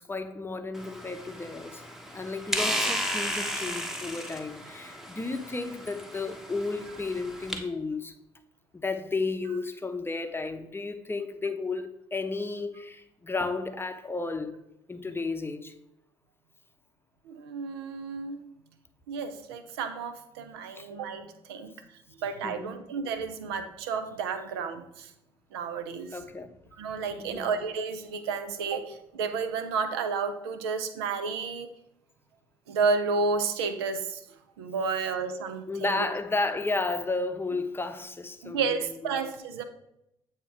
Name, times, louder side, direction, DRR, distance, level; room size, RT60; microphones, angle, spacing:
voice 1, 0.1-1.8 2.1-8.1 8.8-14.6 14.9-15.7 20.8-20.9 22.4-22.8 26.1-26.5 27.2-27.5 35.7-38.9 39.1-39.2, left 3 dB, 20° left, 0.7 m, -33 dB
sound 1, 0.7-7.6, equal, 5° right, 1.1 m, -34 dB
voice 2, 17.3-18.4 19.1-21.7 22.2-25.1 25.5-26.1 26.8-31.7 32.7-34.2 34.6-36.1 38.4-39.6, right 5 dB, 90° right, 0.5 m, -31 dB
8.4 x 2.9 x 4.6 m
hypercardioid pair, 55°, 13 cm